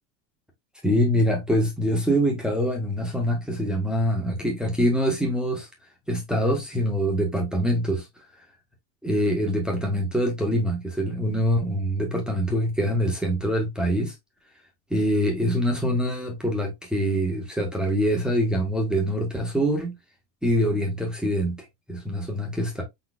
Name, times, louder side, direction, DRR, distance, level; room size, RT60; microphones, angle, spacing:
voice 1, 0.8-5.7 6.1-8.1 9.0-14.1 14.9-19.9 20.4-22.8, equal, ahead, 0.5 m, -24 dB
4.5 x 4.0 x 2.2 m
supercardioid pair, 165°, 48 cm